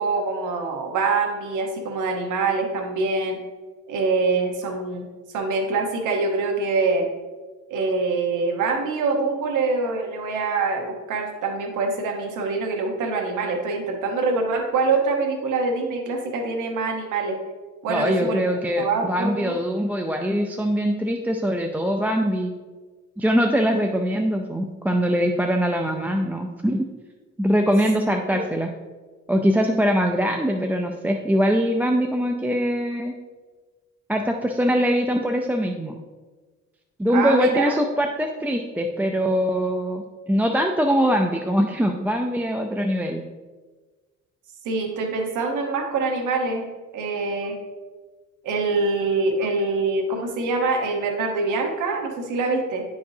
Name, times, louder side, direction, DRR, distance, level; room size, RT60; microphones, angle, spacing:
voice 1, 0.0-3.4 3.9-5.1 5.3-7.1 7.7-17.4 17.8-18.4 18.8-19.5 28.3-28.4 37.1-37.7 44.6-46.7 46.9-47.6 48.4-52.8, right 3 dB, 85° right, 2 dB, 1.2 m, -24 dB
voice 2, 17.9-22.5 23.2-26.9 27.4-28.7 29.3-33.2 34.1-36.0 37.0-43.2, equal, 5° right, 3 dB, 0.4 m, -22 dB
10.5 x 4.7 x 2.7 m, 1.3 s
cardioid pair, 90°, 30 cm